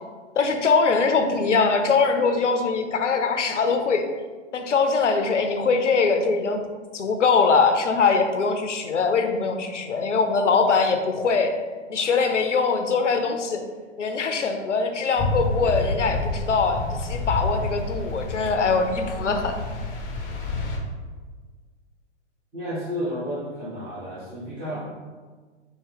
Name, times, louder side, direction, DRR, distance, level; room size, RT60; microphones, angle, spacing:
voice 1, 0.4-4.1 4.5-6.6 6.9-11.5 11.9-13.6 14.0-19.5, left 4 dB, 90° left, 6 dB, 0.5 m, -22 dB
sound 1, 15.2-20.8, left 2 dB, 25° left, 0.6 m, -29 dB
voice 2, 22.5-24.8, equal, 25° right, -6 dB, 1.3 m, -31 dB
4.5 x 2.1 x 3.5 m, 1.5 s
figure-of-eight pair, 115°, 35 cm